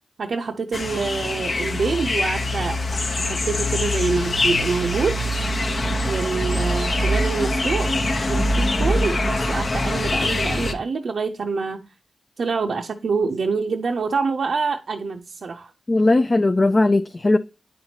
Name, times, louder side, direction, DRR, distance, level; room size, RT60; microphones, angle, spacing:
voice 1, 0.2-5.2 6.1-7.9 8.3-11.9 12.4-15.7, right 4 dB, 75° right, 0.5 m, -26 dB
sound 1, 0.7-10.7, left 1 dB, 55° left, 0.8 m, -23 dB
voice 2, 15.9-17.4, left 2 dB, 35° left, 0.4 m, -18 dB
9.6 x 4.3 x 2.8 m
cardioid pair, 60°, 0 cm